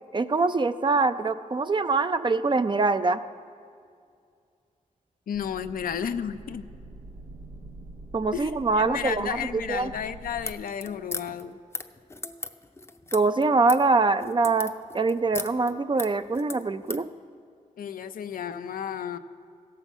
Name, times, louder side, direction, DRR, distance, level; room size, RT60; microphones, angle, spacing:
voice 1, 0.1-3.2 8.1-9.9 13.1-17.1, right 3 dB, 35° right, 11 dB, 0.5 m, -24 dB
voice 2, 5.3-6.6 8.3-11.6 17.8-19.2, left 8 dB, 80° left, 10 dB, 0.5 m, -32 dB
sound 1, 5.3-10.5, right 2 dB, 85° right, 0.9 m, -45 dB
sound 2, 10.3-17.1, left 2 dB, 15° left, 0.6 m, -37 dB
16.0 x 5.7 x 7.1 m, 2.3 s
cardioid pair, 65°, 15 cm